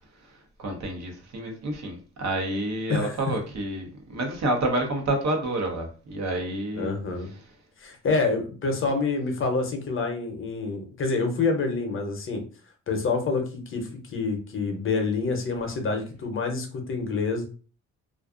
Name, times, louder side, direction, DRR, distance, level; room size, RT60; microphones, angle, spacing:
voice 1, 0.6-7.0, right 1 dB, 60° right, 0.9 m, -29 dB
voice 2, 6.7-7.3 7.8-12.4 12.9-17.5, left 4 dB, 45° left, 0.7 m, -27 dB
2.4 x 2.4 x 2.4 m
cardioid pair, 90°, 30 cm